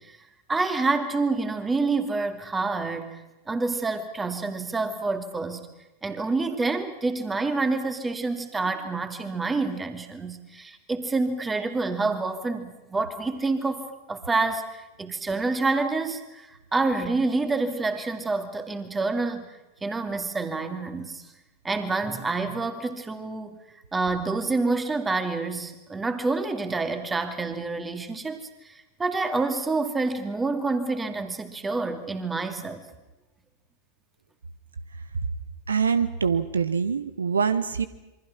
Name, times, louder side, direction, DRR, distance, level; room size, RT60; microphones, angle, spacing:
voice 1, 0.5-3.2 3.5-5.7 6.0-19.5 19.8-21.2 21.6-23.6 23.9-32.8, right 3 dB, 15° right, 8 dB, 2.4 m, -28 dB
voice 2, 35.7-37.9, right 6 dB, 70° right, 13 dB, 0.9 m, -24 dB
27.5 x 24.0 x 6.1 m, 1.0 s
figure-of-eight pair, 90°, 0 cm